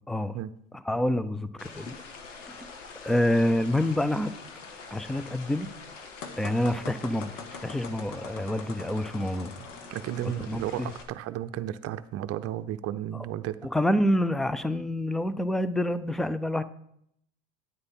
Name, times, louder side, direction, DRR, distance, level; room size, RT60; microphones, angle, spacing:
voice 1, 0.1-0.4 0.8-2.0 2.5-2.7 3.0-4.3 4.9-5.7 6.4-7.3 7.6-9.5 10.2-10.9 13.1-13.2 13.6-16.6, left 1 dB, ahead, 14 dB, 0.3 m, -27 dB
sound 1, 1.6-11.0, left 4 dB, 80° left, 1.7 m, -45 dB
sound 2, 6.2-10.4, left 5 dB, 65° left, 1.7 m, -43 dB
voice 2, 9.9-13.6, right 12 dB, 40° right, 13 dB, 0.6 m, -33 dB
9.4 x 9.0 x 4.3 m, 0.74 s
hypercardioid pair, 95°, 36 cm